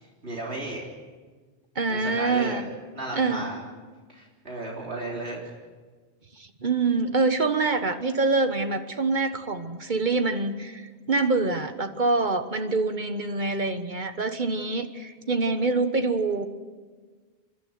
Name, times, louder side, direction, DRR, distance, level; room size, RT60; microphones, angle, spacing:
voice 1, 0.2-0.8 1.9-2.6 2.9-3.6 4.1-5.5, right 2 dB, 75° right, -2 dB, 3.9 m, -34 dB
voice 2, 1.7-2.7 3.1-3.5 6.4-16.5, right 3 dB, 45° right, 8 dB, 1.4 m, -25 dB
29.0 x 12.0 x 9.6 m, 1.4 s
omnidirectional pair, 1.1 m